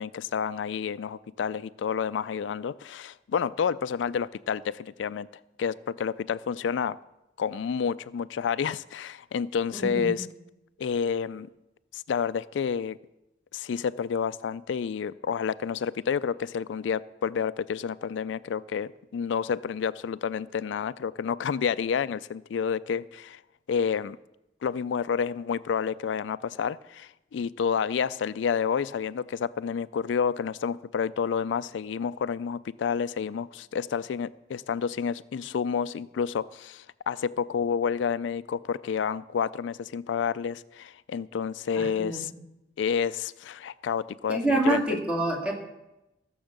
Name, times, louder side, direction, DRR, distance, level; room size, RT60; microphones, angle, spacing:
voice 1, 0.0-5.3 5.6-7.0 7.4-10.3 10.8-11.5 11.9-13.0 13.5-23.4 23.7-24.2 24.6-42.3 42.8-44.8, left 7 dB, 85° left, 17 dB, 0.3 m, -29 dB
voice 2, 9.7-10.2 41.8-42.4 44.3-45.5, right 1 dB, 5° right, 0 dB, 2.1 m, -27 dB
15.0 x 7.1 x 6.6 m, 0.93 s
head